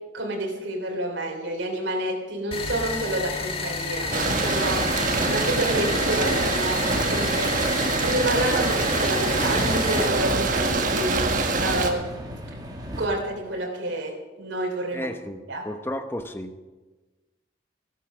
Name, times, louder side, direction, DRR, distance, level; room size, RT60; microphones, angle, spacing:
voice 1, 0.1-4.8 5.3-7.5 8.0-12.1 13.0-15.1 15.5-15.6, right 1 dB, 75° right, 0 dB, 3.0 m, -29 dB
sound 1, 2.5-10.1, left 4 dB, 30° left, 1.6 m, -31 dB
sound 2, 4.0-13.1, equal, 20° right, 1.9 m, -34 dB
sound 3, 4.1-11.9, right 3 dB, 45° right, 1.4 m, -25 dB
voice 2, 14.9-16.5, left 1 dB, 10° left, 8 dB, 0.8 m, -33 dB
14.0 x 12.5 x 6.1 m, 1.2 s
head